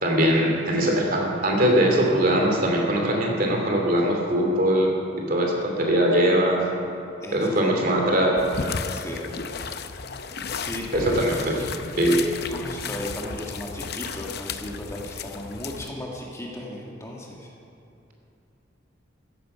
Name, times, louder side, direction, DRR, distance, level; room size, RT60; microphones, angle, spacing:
voice 1, 0.0-6.7 7.3-8.4 10.9-11.5 12.0-12.2, right 1 dB, 45° right, 0 dB, 2.7 m, -21 dB
sound 1, 8.4-15.9, left 5 dB, 55° left, 0.7 m, -34 dB
voice 2, 8.8-9.2 10.4-11.7 12.5-17.5, left 1 dB, 15° left, -2 dB, 1.8 m, -35 dB
15.0 x 13.0 x 5.7 m, 2.8 s
head